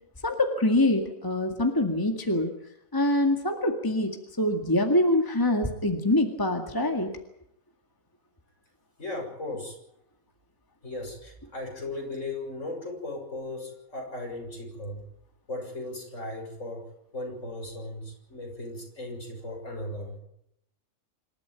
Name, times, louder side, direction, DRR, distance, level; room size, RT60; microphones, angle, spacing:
voice 1, 0.2-2.5 2.9-7.1, left 1 dB, 15° left, 4 dB, 2.1 m, -25 dB
voice 2, 9.0-9.8 10.8-15.0 15.5-16.9 17.1-20.2, left 2 dB, 60° left, 2 dB, 7.1 m, -37 dB
27.0 x 13.0 x 9.2 m, 0.77 s
omnidirectional pair, 1.4 m